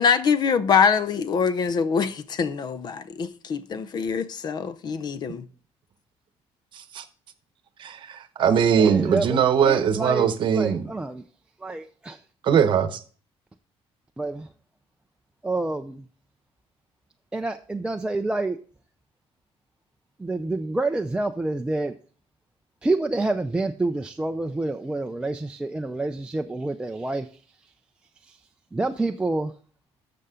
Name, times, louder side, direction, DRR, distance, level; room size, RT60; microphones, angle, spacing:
voice 1, 0.0-5.5, left 6 dB, 40° left, 0.6 m, -24 dB
voice 2, 6.7-7.0 7.8-10.8 12.4-13.0, right 7 dB, 50° right, 0.9 m, -21 dB
voice 3, 8.8-11.2 11.6-12.2 14.2-14.5 15.4-16.0 17.3-18.6 20.2-21.9 22.8-27.3 28.2-28.4 28.7-29.5, right 2 dB, 10° right, 0.4 m, -28 dB
12.5 x 6.7 x 3.7 m
cardioid pair, 160°, 11 cm